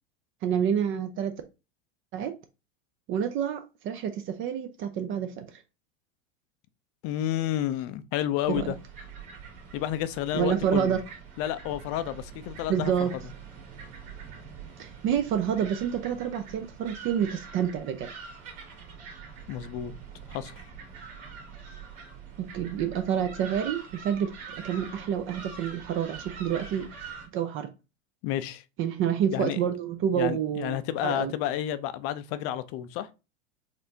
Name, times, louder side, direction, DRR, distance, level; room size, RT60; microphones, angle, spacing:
voice 1, 0.4-1.3 2.1-2.3 3.1-5.6 8.6-8.7 10.3-11.0 12.7-13.1 14.8-18.1 22.4-24.3 24.6-26.9 27.3-27.7 28.8-30.8 31.0-31.3, right 8 dB, 40° right, 0.5 m, -28 dB
voice 2, 7.0-8.8 9.7-10.9 11.4-13.2 19.5-19.9 20.3-20.7 28.2-28.6 29.3-29.6 30.1-33.1, left 12 dB, 45° left, 0.5 m, -30 dB
sound 1, 8.4-27.3, right 6 dB, 55° right, 1.9 m, -44 dB
4.2 x 2.6 x 2.7 m
hypercardioid pair, 105°, 32 cm